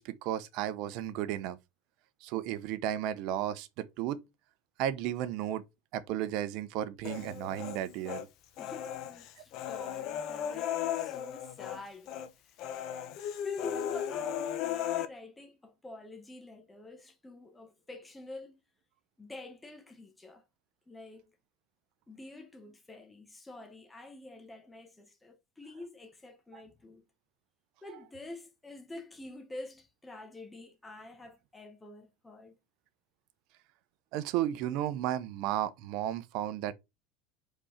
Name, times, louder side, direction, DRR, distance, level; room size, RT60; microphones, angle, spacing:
voice 1, 0.0-1.6 2.2-4.2 4.8-5.6 5.9-8.3 26.5-26.6 34.1-36.7, right 12 dB, 60° right, 0.9 m, -33 dB
Human voice, 7.0-8.2 8.6-11.8 12.1-12.3 12.6-15.1, left 10 dB, 55° left, 1.1 m, -36 dB
voice 2, 8.6-12.1 12.4-12.5 13.4-18.6 19.2-20.4 20.9-21.3 22.1-27.0 27.8-32.6, left 2 dB, 10° left, 1.6 m, -47 dB
5.2 x 4.3 x 5.0 m
supercardioid pair, 120°, 0 cm